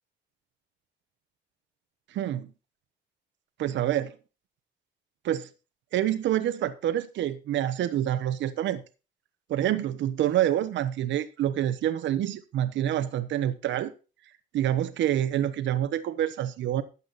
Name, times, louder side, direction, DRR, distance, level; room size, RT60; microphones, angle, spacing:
voice 1, 2.1-2.5 3.6-4.2 5.2-5.5 5.9-8.8 9.5-13.9 14.5-16.8, right 11 dB, 70° right, 1.1 m, -27 dB
12.5 x 8.6 x 4.1 m
cardioid pair, 125°, 20 cm